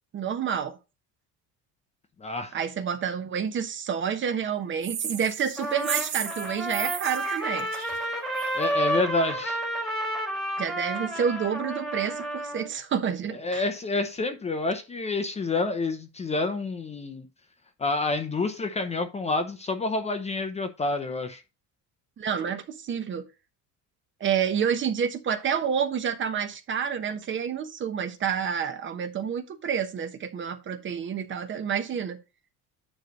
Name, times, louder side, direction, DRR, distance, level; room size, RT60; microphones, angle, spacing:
voice 1, 0.1-0.8 2.5-7.7 10.6-13.7 22.2-23.3 24.2-32.2, right 7 dB, 35° right, 0.9 m, -29 dB
voice 2, 2.2-2.5 8.5-9.6 13.3-17.2 17.8-21.4, left 3 dB, 20° left, 0.6 m, -28 dB
sound 1, 4.8-8.6, right 9 dB, 65° right, 2.1 m, -34 dB
Trumpet, 5.6-12.7, right 1 dB, ahead, 1.6 m, -30 dB
9.3 x 3.3 x 5.1 m
cardioid pair, 160°, 36 cm